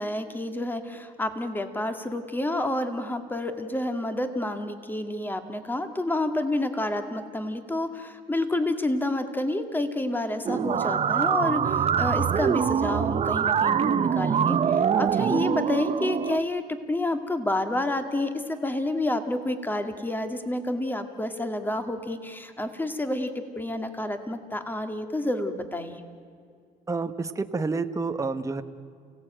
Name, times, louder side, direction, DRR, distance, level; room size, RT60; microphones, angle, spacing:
voice 1, 0.0-26.0, left 1 dB, 10° left, 7 dB, 2.1 m, -29 dB
sound 1, 10.5-16.4, right 8 dB, 40° right, 0.7 m, -24 dB
voice 2, 26.9-28.6, right 4 dB, 20° right, 8 dB, 1.1 m, -29 dB
29.0 x 17.5 x 9.0 m, 2.2 s
cardioid pair, 110°, 17 cm